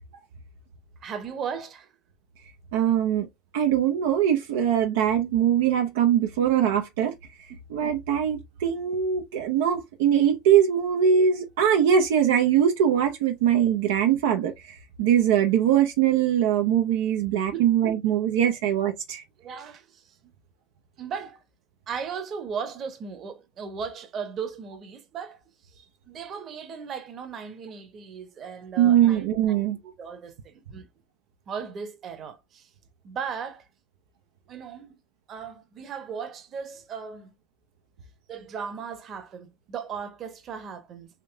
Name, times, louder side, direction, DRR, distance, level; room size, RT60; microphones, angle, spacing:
voice 1, 1.0-1.9 7.5-7.6 17.5-17.7 19.4-20.3 21.0-21.4 21.9-25.4 26.1-30.9 31.5-32.7 33.0-33.7 34.5-35.0 35.3-37.3 38.3-41.1, right 6 dB, 45° right, 1.1 m, -37 dB
voice 2, 2.7-3.3 3.5-7.2 7.7-19.2 28.8-29.8, right 9 dB, 80° right, 0.6 m, -22 dB
3.6 x 2.7 x 3.3 m
supercardioid pair, 95°, 0 cm